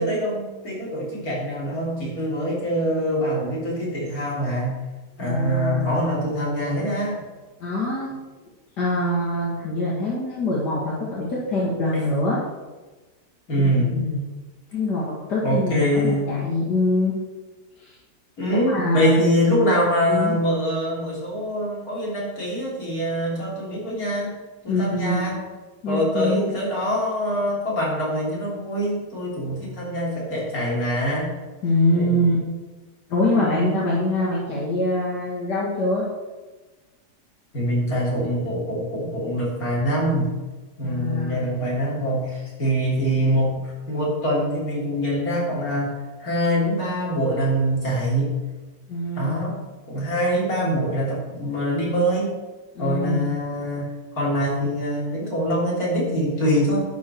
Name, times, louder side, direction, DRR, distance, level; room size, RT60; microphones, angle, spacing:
voice 1, 0.0-4.8 5.2-7.2 11.9-12.0 13.5-14.0 15.4-16.5 18.4-24.3 24.6-25.4 25.9-31.3 31.9-32.2 33.3-33.8 37.5-40.3 40.8-45.9 46.2-48.4 49.2-49.6 49.9-52.3 52.8-56.8, equal, 55° left, -5 dB, 4.0 m, -24 dB
voice 2, 5.2-6.0 7.6-8.2 8.8-12.4 13.6-14.2 14.7-17.2 17.8-17.9 18.6-19.2 20.1-20.3 24.7-25.3 25.8-26.5 31.6-32.4 33.1-36.1 40.8-41.6 48.9-49.6 50.6-51.1 52.8-53.4, left 1 dB, 80° left, -6 dB, 2.6 m, -24 dB
11.5 x 8.5 x 4.6 m, 1.2 s
omnidirectional pair, 1.8 m